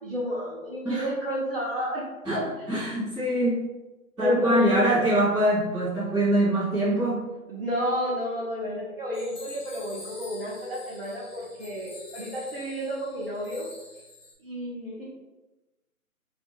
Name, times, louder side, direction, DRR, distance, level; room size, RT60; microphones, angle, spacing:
voice 1, 0.0-2.0 2.3-2.5 4.2-4.9 7.5-13.7 14.4-15.0, equal, 45° right, -5 dB, 0.6 m, -31 dB
voice 2, 2.2-3.6 4.2-7.2, right 1 dB, 5° right, -17 dB, 0.7 m, -24 dB
sound 1, 9.1-14.3, left 2 dB, 60° left, 1.0 m, -46 dB
2.4 x 2.4 x 2.9 m, 1.1 s
figure-of-eight pair, 155°, 43 cm